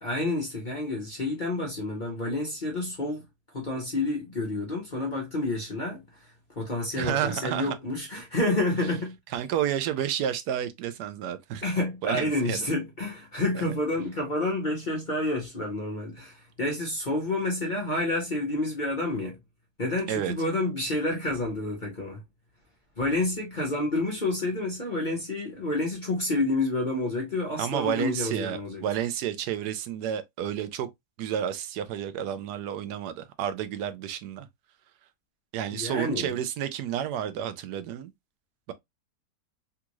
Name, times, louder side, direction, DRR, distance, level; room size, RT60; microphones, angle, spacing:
voice 1, 0.0-3.2 3.5-6.0 6.6-9.2 11.6-19.4 19.8-22.2 23.0-28.8 35.7-36.3, left 2 dB, 35° left, 0.9 m, -29 dB
voice 2, 7.0-7.8 9.3-11.6 12.0-12.6 13.5-13.7 20.1-20.3 27.6-30.9 31.2-34.5 35.5-38.1, right 10 dB, 80° right, 1.1 m, -30 dB
3.5 x 2.5 x 2.9 m
omnidirectional pair, 1.8 m